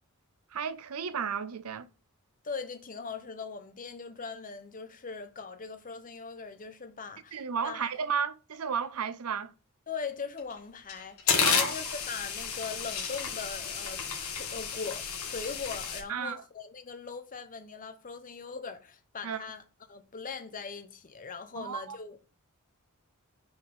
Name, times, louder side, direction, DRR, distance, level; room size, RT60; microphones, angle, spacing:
voice 1, 0.5-1.9 7.3-9.5 11.4-11.7 16.1-16.4 19.2-19.4 21.6-22.0, right 6 dB, 70° right, 0.6 m, -33 dB
voice 2, 2.4-7.9 9.9-19.6 19.9-22.2, left 5 dB, 40° left, 0.9 m, -40 dB
sound 1, 10.4-10.5 10.9-16.0, left 6 dB, 70° left, 1.6 m, -31 dB
5.2 x 4.1 x 5.3 m
head